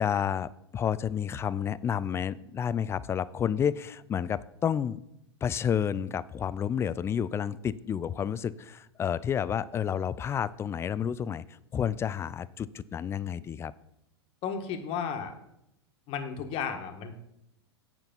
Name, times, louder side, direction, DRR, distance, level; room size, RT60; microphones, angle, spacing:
voice 1, 0.0-5.0 5.4-11.4 11.7-13.7, left 8 dB, 20° left, 18 dB, 0.3 m, -30 dB
voice 2, 14.4-15.3 16.1-17.1, left 7 dB, 40° left, 6 dB, 1.4 m, -33 dB
8.9 x 6.0 x 5.3 m, 0.82 s
hypercardioid pair, 100°, 14 cm